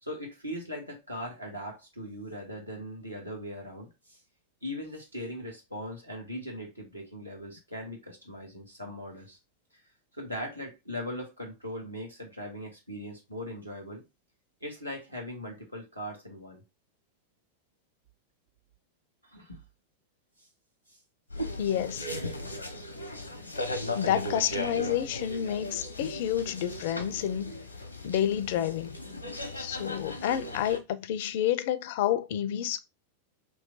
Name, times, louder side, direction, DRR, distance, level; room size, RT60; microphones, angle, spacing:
voice 1, 0.0-4.2 4.6-9.4 9.7-9.8 10.1-14.0 14.6-16.6 19.2-19.6 20.4-20.5 20.9-21.0 29.5-29.6, equal, 90° right, 1.4 m, -40 dB
sound 1, 21.3-30.8, left 1 dB, 85° left, 0.8 m, -37 dB
voice 2, 21.6-22.1 23.9-27.5 28.0-29.0 29.6-32.8, left 10 dB, 50° left, 0.4 m, -29 dB
3.1 x 3.0 x 3.9 m
figure-of-eight pair, 90°, 0 cm